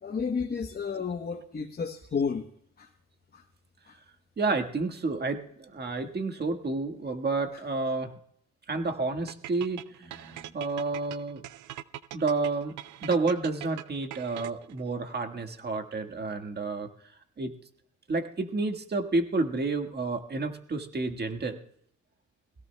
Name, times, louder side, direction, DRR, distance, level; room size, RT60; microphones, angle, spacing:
voice 1, 0.0-2.4 2.8-2.9 3.3-3.4 3.9-4.0 7.5-7.6, left 5 dB, 30° left, 4 dB, 1.0 m, -32 dB
voice 2, 4.4-8.1 8.7-11.4 12.1-12.7 13.0-16.9 17.4-17.5 18.1-21.6, right 3 dB, 35° right, 6 dB, 1.6 m, -30 dB
sound 1, 9.3-14.8, right 13 dB, 75° right, 0.6 m, -42 dB
21.5 x 16.5 x 2.2 m, 0.67 s
cardioid pair, 90°, 30 cm